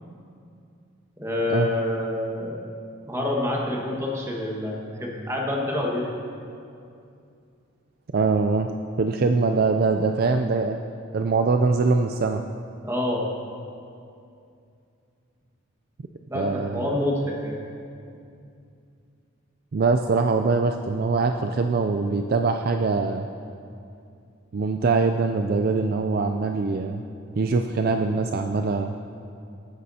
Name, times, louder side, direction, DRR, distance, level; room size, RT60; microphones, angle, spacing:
voice 1, 1.2-2.6 3.1-6.1 12.8-13.3 16.3-17.6, left 1 dB, 15° right, -2 dB, 1.5 m, -27 dB
voice 2, 8.1-8.7 9.0-10.8 11.1-12.4 16.3-16.9 19.7-23.3 24.5-27.0 27.4-29.0, right 4 dB, 50° right, 6 dB, 0.4 m, -23 dB
18.0 x 9.7 x 2.8 m, 2.5 s
head